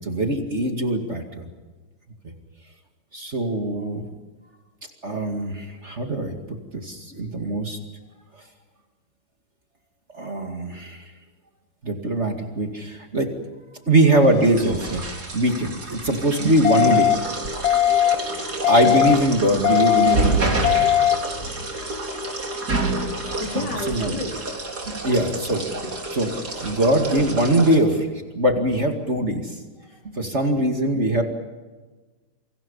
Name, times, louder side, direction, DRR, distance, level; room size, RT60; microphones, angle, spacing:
voice 1, 0.0-1.4 3.1-4.0 5.0-6.4 6.8-7.8 10.1-11.0 11.8-13.3 13.9-15.0 15.3-17.3 18.6-20.5 23.6-24.1 25.0-25.6 26.1-28.1 28.3-29.5 30.0-31.2, right 1 dB, 35° right, 3 dB, 2.5 m, -22 dB
sound 1, 14.2-27.8, right 2 dB, 50° right, 4.1 m, -29 dB
sound 2, 16.6-17.1 17.6-18.1 18.6-19.1 19.6-20.1 20.6-21.1, left 12 dB, 70° left, 1.7 m, -18 dB
voice 2, 23.4-25.3 25.8-26.4 29.8-29.9, left 2 dB, 55° left, 3 dB, 3.3 m, -33 dB
29.0 x 25.0 x 5.6 m, 1.3 s
omnidirectional pair, 2.3 m